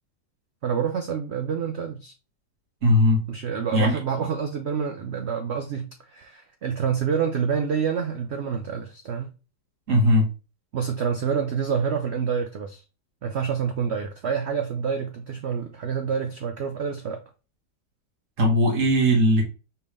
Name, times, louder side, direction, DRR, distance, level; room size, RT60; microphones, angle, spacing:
voice 1, 0.6-2.1 3.3-9.3 10.7-12.8 13.2-17.2, right 7 dB, 85° right, 0.5 m, -27 dB
voice 2, 2.8-3.2 3.7-4.0 9.9-10.3 18.4-19.4, equal, 50° right, 2.1 m, -19 dB
4.5 x 3.5 x 3.3 m
omnidirectional pair, 1.8 m